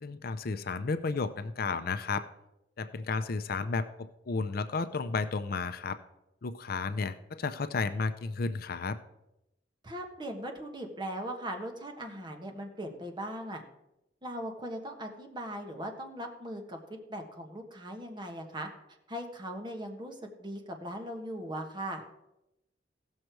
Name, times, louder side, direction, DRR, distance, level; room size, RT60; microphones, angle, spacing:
voice 1, 0.0-2.2 2.8-6.0 6.4-9.0, left 4 dB, 55° left, 11 dB, 0.5 m, -32 dB
voice 2, 9.8-13.6 14.2-18.7 19.1-22.0, right 1 dB, 25° right, 3 dB, 1.4 m, -39 dB
16.0 x 6.5 x 4.6 m, 0.90 s
head